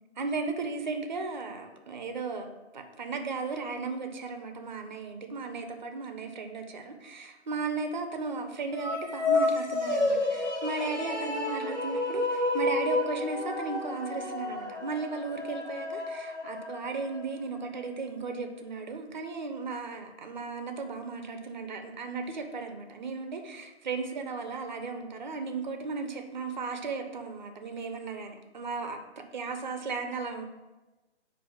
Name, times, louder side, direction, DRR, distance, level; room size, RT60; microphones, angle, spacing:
voice 1, 0.2-29.0 29.3-30.4, right 4 dB, 45° right, 5 dB, 0.4 m, -35 dB
sound 1, 8.7-17.2, left 2 dB, 85° left, 1.3 m, -30 dB
4.4 x 2.4 x 4.7 m, 1.1 s
hypercardioid pair, 175°, 34 cm